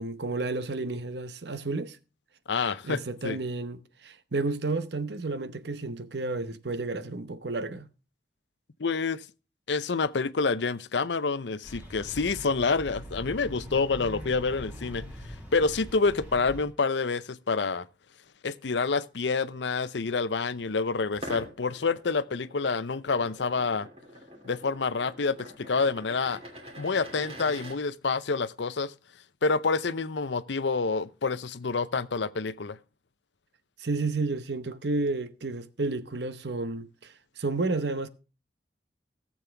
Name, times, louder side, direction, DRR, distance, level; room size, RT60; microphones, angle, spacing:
voice 1, 0.0-2.0 2.8-7.9 33.8-38.1, right 3 dB, 70° right, 0.9 m, -31 dB
voice 2, 2.5-3.4 8.8-9.2 9.7-15.0 15.5-17.8 18.4-23.9 24.4-26.4 26.8-28.9 29.4-32.8, left 4 dB, 80° left, 0.7 m, -28 dB
sound 1, 11.6-16.7, equal, 5° right, 2.9 m, -42 dB
sound 2, 21.1-27.8, equal, 35° right, 2.7 m, -45 dB
17.5 x 7.4 x 3.4 m
head